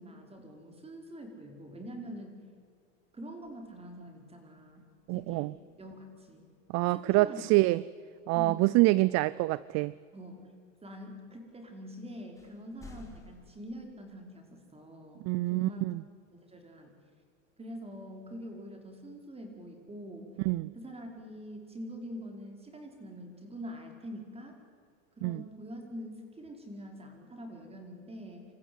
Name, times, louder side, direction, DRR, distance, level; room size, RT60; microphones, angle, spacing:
voice 1, 0.0-2.4 3.1-4.8 5.1-6.4 6.9-7.4 8.3-8.7 10.1-10.5 10.8-15.9 16.3-16.9 17.6-20.4 20.7-24.6 25.2-28.5, equal, 15° right, 5.1 m, -45 dB
sound 1, 3.4-4.2 5.0-5.9 9.5-9.6 11.6-11.7 12.3-13.5, left 3 dB, 10° left, 4.4 m, -54 dB
voice 2, 5.1-5.5 6.7-7.8 8.3-9.9 15.2-16.0 20.5-20.7 25.2-25.4, right 20 dB, 45° right, 0.5 m, -26 dB
27.5 x 15.0 x 9.6 m
supercardioid pair, 120°, 38 cm